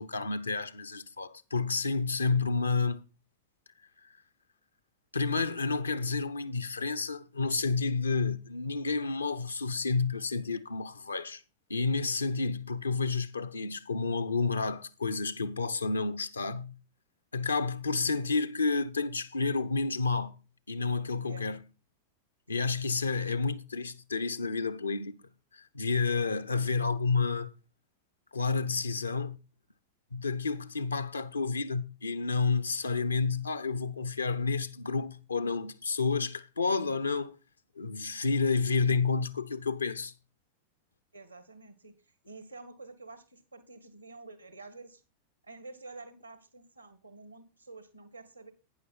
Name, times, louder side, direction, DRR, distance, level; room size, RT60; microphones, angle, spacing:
voice 1, 0.0-3.0 5.1-11.4 11.7-16.8 17.3-20.4 20.7-21.6 22.5-25.2 25.5-27.5 28.3-29.4 30.1-37.4 37.8-40.1, left 4 dB, 75° left, 0.8 m, -30 dB
voice 2, 41.1-42.0 42.2-45.0 45.4-48.5, right 3 dB, 85° right, 1.8 m, -49 dB
11.0 x 9.7 x 4.1 m
figure-of-eight pair, 90°, 0 cm